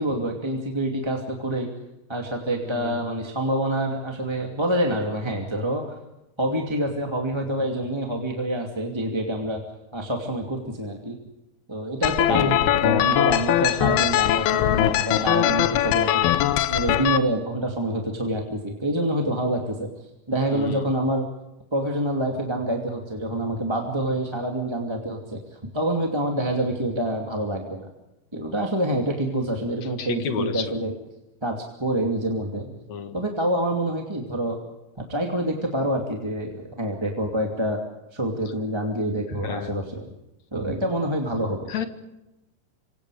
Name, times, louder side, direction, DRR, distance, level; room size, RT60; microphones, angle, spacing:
voice 1, 0.0-1.7 2.1-6.0 6.4-9.6 9.9-11.2 11.7-16.3 16.7-19.9 20.3-21.2 21.7-27.9 28.3-30.9 31.4-32.7 33.1-34.6 35.1-37.8 38.1-40.1 40.5-41.7, right 1 dB, 10° right, 1 dB, 1.9 m, -26 dB
sound 1, 12.0-17.2, left 13 dB, 85° left, 2.8 m, -21 dB
voice 2, 12.3-12.6 18.3-18.4 20.5-20.9 30.0-30.6 32.9-33.1 39.4-39.8 41.7-41.9, left 7 dB, 55° left, 9 dB, 2.5 m, -30 dB
27.5 x 25.5 x 5.0 m, 0.93 s
omnidirectional pair, 4.3 m